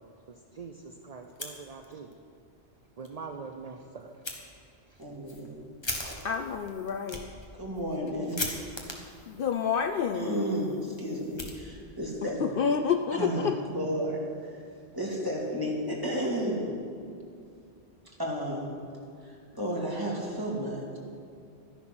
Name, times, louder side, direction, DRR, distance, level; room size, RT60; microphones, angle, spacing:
voice 1, 0.5-2.1 3.0-4.1 4.9-5.0, right 5 dB, 40° right, 5 dB, 0.6 m, -43 dB
Fire, 1.2-2.2 2.5-2.6 3.0-3.1 4.2-4.4 4.9-12.1, left 1 dB, 25° left, 1.4 m, -41 dB
voice 2, 5.0-5.6 6.0-6.1 7.6-8.5 10.1-12.4 13.2-14.6 14.9-16.7 18.2-18.7 19.2-21.0, equal, 20° right, -3 dB, 2.3 m, -32 dB
voice 3, 6.2-7.3 9.3-10.4 12.2-13.6, left 6 dB, 60° left, 7 dB, 0.7 m, -29 dB
12.5 x 10.0 x 6.0 m, 2.4 s
omnidirectional pair, 1.1 m